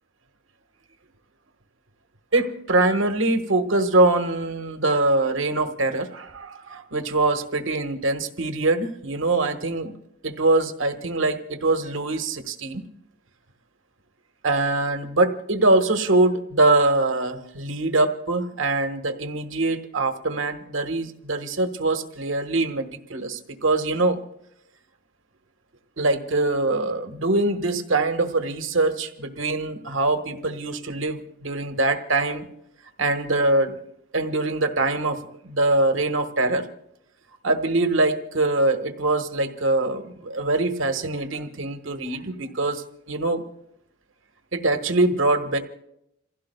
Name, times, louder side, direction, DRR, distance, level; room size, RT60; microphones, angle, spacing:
voice 1, 2.3-10.0 10.2-12.8 14.4-24.2 26.0-32.5 33.0-33.8 34.1-36.7 37.4-43.4 44.5-45.6, right 2 dB, 75° right, 7 dB, 1.4 m, -23 dB
28.5 x 16.5 x 2.3 m, 0.79 s
head